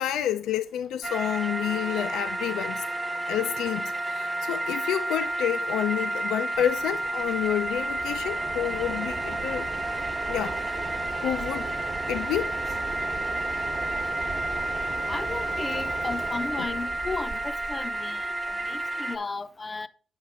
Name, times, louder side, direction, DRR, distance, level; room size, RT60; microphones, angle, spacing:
voice 1, 0.0-2.8 3.3-9.7 10.3-10.8 11.2-11.7 12.1-12.5 16.6-16.7, left 11 dB, 85° left, 0.4 m, -29 dB
sound 1, 1.0-19.2, right 1 dB, 20° right, 0.8 m, -31 dB
Mechanisms, 6.5-18.9, right 4 dB, 50° right, 1.0 m, -38 dB
voice 2, 15.1-19.9, left 3 dB, 30° left, 0.5 m, -35 dB
7.9 x 5.7 x 3.4 m
cardioid pair, 90°, 0 cm